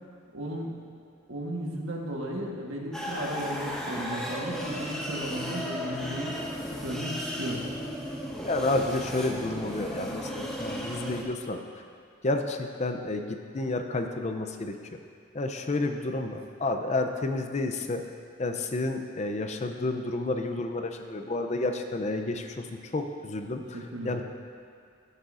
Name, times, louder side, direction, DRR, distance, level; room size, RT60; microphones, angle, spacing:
voice 1, 0.3-0.7 1.3-6.3 6.8-7.6 16.1-16.3 23.6-24.2, equal, 90° right, -1 dB, 1.3 m, -35 dB
sound 1, 2.9-11.2, equal, 5° left, 0.8 m, -35 dB
voice 2, 8.4-11.6 12.2-14.8 15.3-18.0 18.4-23.8 24.0-24.2, left 2 dB, 35° left, 6 dB, 0.5 m, -30 dB
15.5 x 6.6 x 2.5 m, 2.3 s
head